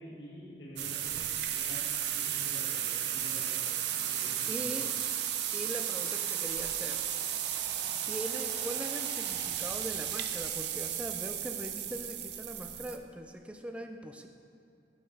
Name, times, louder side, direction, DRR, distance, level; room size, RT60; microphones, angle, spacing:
voice 1, 0.0-1.9 2.1-4.8, equal, 85° left, -5 dB, 1.5 m, -48 dB
sound 1, 0.8-13.0, right 10 dB, 70° right, 0.4 m, -34 dB
voice 2, 4.5-4.9 5.5-7.0 7.9-14.3, right 1 dB, 5° right, 5 dB, 0.3 m, -41 dB
6.8 x 5.3 x 4.7 m, 2.6 s
head